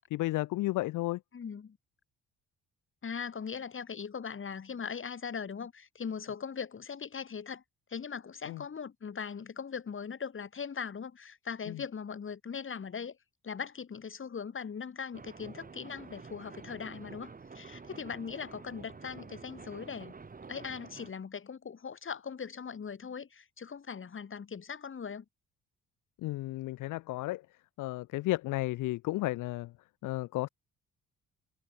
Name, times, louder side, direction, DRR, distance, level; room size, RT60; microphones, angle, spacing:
voice 1, 0.1-1.2 8.5-8.6 11.7-11.8 26.2-27.4 27.8-29.7 30.0-30.5, left 18 dB, 90° left, 0.8 m, -33 dB
voice 2, 1.3-1.8 3.0-7.6 7.9-13.2 13.4-20.1 20.5-25.3, left 6 dB, 40° left, 5.2 m, -40 dB
sound 1, 15.1-21.1, right 4 dB, 30° right, 2.9 m, -49 dB
cardioid pair, 90°, 30 cm